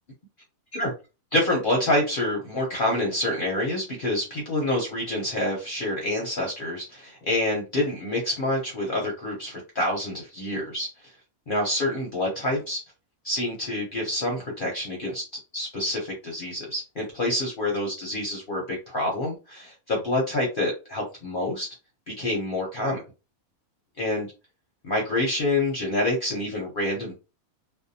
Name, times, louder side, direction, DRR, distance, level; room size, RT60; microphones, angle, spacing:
voice 1, 1.3-10.9 11.5-12.8 13.2-15.2 15.5-21.7 22.1-23.0 24.0-24.3 24.8-27.2, left 1 dB, 50° left, -1 dB, 0.7 m, -27 dB
2.6 x 2.0 x 2.6 m, 0.30 s
omnidirectional pair, 1.5 m